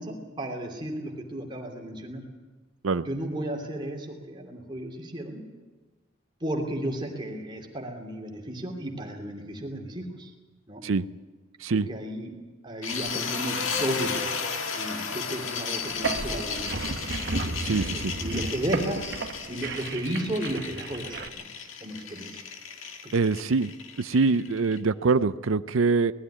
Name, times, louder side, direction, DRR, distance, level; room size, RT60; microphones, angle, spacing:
voice 1, 0.0-2.2 3.0-5.4 6.4-10.3 10.7-10.8 11.7-12.3 12.6-14.2 14.7-21.4 21.8-22.4 23.0-23.4, right 1 dB, 25° right, 2 dB, 2.8 m, -34 dB
sound 1, 12.8-24.8, left 5 dB, 70° left, 1.8 m, -34 dB
sound 2, 12.9-13.2 13.6-14.2 15.2-15.3 16.1-17.5 17.8-18.2, equal, 25° left, 4.0 m, -42 dB
sound 3, 15.9-21.3, right 3 dB, 55° right, 1.0 m, -33 dB
voice 2, 17.6-18.1 23.1-23.7 24.0-26.1, right 4 dB, 70° right, 13 dB, 0.6 m, -24 dB
19.5 x 13.5 x 10.0 m, 1.3 s
head